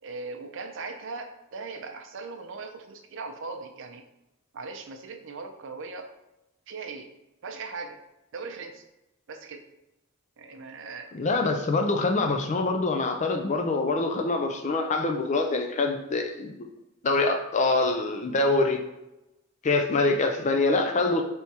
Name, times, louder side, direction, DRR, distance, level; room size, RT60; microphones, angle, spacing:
voice 1, 0.0-4.0 4.5-6.1 6.7-7.1 7.4-8.0 8.3-8.8 9.3-9.7 10.4-11.1, right 4 dB, 60° right, 6 dB, 0.5 m, -39 dB
voice 2, 11.1-16.7 17.0-18.8 19.6-21.2, left 3 dB, 35° left, 5 dB, 0.4 m, -25 dB
4.5 x 3.4 x 2.8 m, 0.93 s
head